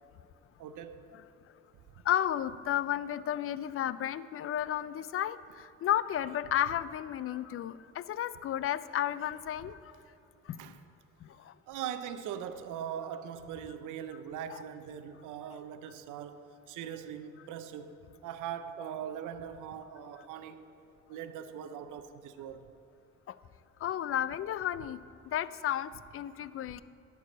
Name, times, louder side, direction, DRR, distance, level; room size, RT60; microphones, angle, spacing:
voice 1, 0.6-1.0 10.6-10.8 11.7-20.6 21.1-22.7, right 9 dB, 90° right, 0.6 m, -41 dB
voice 2, 2.1-9.8 10.5-10.6 11.2-11.5 14.5-14.6 23.8-25.0 25.3-26.8, left 11 dB, 50° left, 0.4 m, -33 dB
11.0 x 4.8 x 7.6 m
cardioid pair, 90°, 30 cm